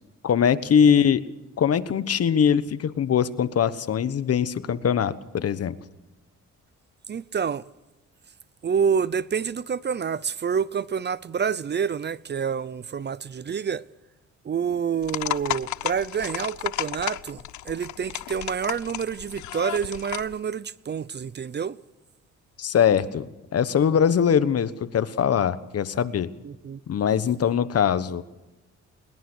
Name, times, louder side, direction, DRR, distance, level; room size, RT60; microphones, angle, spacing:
voice 1, 0.2-1.2 1.6-5.8 22.6-26.3 26.9-28.2, left 8 dB, 50° left, 1.3 m, -22 dB
voice 2, 7.1-7.6 8.6-13.8 14.4-21.8 26.4-26.8, right 7 dB, 35° right, 0.6 m, -28 dB
sound 1, 15.0-20.4, left 15 dB, 70° left, 0.6 m, -33 dB
22.0 x 20.5 x 6.3 m
cardioid pair, 90°, 30 cm